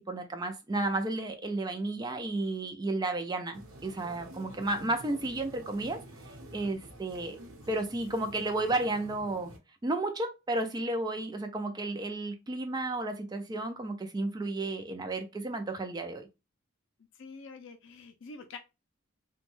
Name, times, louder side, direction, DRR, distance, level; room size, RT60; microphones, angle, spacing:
voice 1, 0.1-6.0 6.5-7.4 7.7-9.5 9.8-16.2, right 2 dB, 20° right, 0.4 m, -32 dB
sound 1, 3.5-9.6, right 1 dB, 75° right, 0.8 m, -49 dB
voice 2, 17.1-18.6, left 4 dB, 60° left, 0.4 m, -46 dB
3.0 x 2.2 x 3.0 m
head